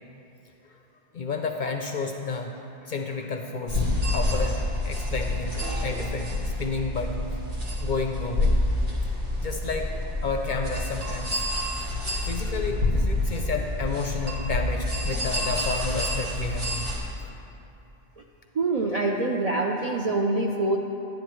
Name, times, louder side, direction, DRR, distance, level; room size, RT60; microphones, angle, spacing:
voice 1, 1.1-7.1 7.8-8.6 9.1-9.9 10.2-17.1, left 4 dB, 55° left, 3 dB, 0.5 m, -31 dB
sound 1, 3.7-17.0, left 1 dB, 90° right, 1.9 m, -28 dB
voice 2, 18.5-20.8, right 2 dB, 55° right, 0 dB, 0.4 m, -25 dB
11.0 x 9.3 x 3.1 m, 2.9 s
omnidirectional pair, 1.2 m